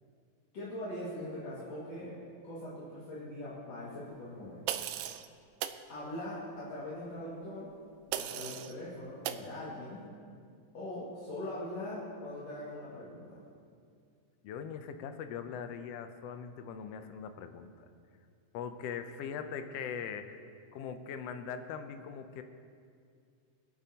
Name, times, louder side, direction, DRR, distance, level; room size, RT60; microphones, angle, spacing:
voice 1, 0.5-2.2 2.4-4.8 5.9-7.7 8.1-10.1 10.7-13.4, left 1 dB, 60° left, -9 dB, 3.1 m, -41 dB
sound 1, 4.7-5.3 5.6-5.8 8.1-8.7 9.2-9.5, right 11 dB, 80° right, 1.7 m, -36 dB
voice 2, 14.4-17.9 18.5-20.4 20.7-22.4, left 7 dB, 75° left, 8 dB, 1.5 m, -41 dB
25.5 x 8.7 x 2.9 m, 2.3 s
omnidirectional pair, 3.5 m